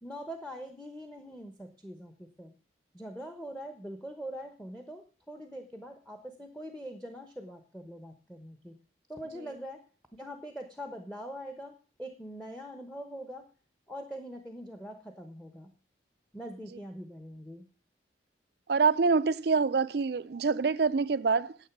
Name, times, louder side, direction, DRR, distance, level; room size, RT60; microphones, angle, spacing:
voice 1, 0.0-2.5 2.9-8.8 9.1-9.8 10.2-13.5 13.9-15.7 16.3-17.7, equal, 5° left, 0.9 m, -43 dB
voice 2, 18.7-21.6, right 4 dB, 60° right, 0.5 m, -26 dB
10.0 x 7.9 x 5.9 m
head